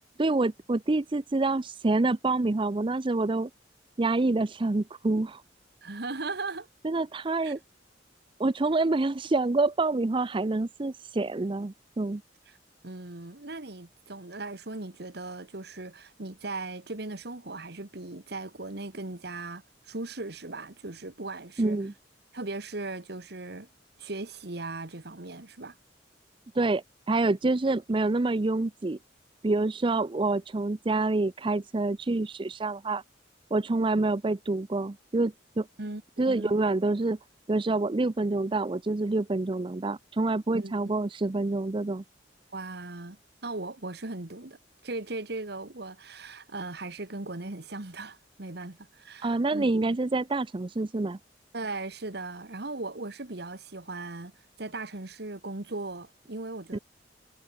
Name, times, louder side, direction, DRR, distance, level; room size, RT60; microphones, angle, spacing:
voice 1, 0.2-3.5 4.0-5.4 6.8-7.6 8.4-12.2 21.6-21.9 26.5-29.0 29.4-33.0 33.5-35.7 36.2-37.2 37.5-42.0 49.2-51.2 56.7-56.8, right 2 dB, 30° right, 0.5 m, -27 dB
voice 2, 5.8-6.7 7.4-7.5 12.5-12.6 12.8-21.8 22.3-23.7 24.0-25.7 35.8-36.5 40.5-40.7 42.5-43.2 43.4-44.6 44.8-50.1 51.5-54.3 54.6-56.8, right 2 dB, 60° right, 1.7 m, -38 dB
head